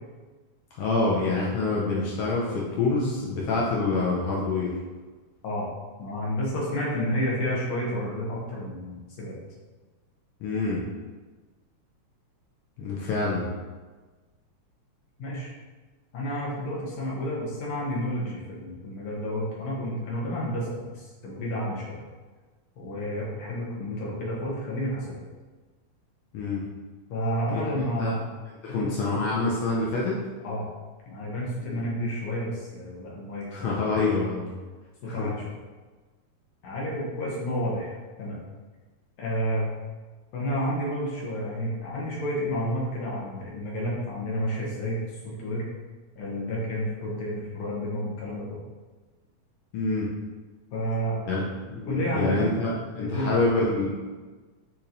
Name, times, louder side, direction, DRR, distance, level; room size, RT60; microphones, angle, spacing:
voice 1, 0.8-4.7 10.4-10.8 12.8-13.5 26.3-26.6 27.5-28.2 28.6-30.2 31.7-31.8 33.5-34.5 35.1-35.3 49.7-50.1 51.2-53.9, left 3 dB, 85° left, -4 dB, 1.2 m, -26 dB
voice 2, 6.0-9.4 15.2-15.5 16.1-22.0 22.8-25.2 27.1-28.2 28.8-29.3 30.4-30.7 31.1-34.0 35.0-35.4 36.6-38.4 39.2-39.7 40.3-45.7 46.2-48.6 50.7-51.2 51.9-52.5 53.0-53.4, equal, 70° left, -5 dB, 2.2 m, -30 dB
6.8 x 3.0 x 2.6 m, 1.3 s
omnidirectional pair, 3.3 m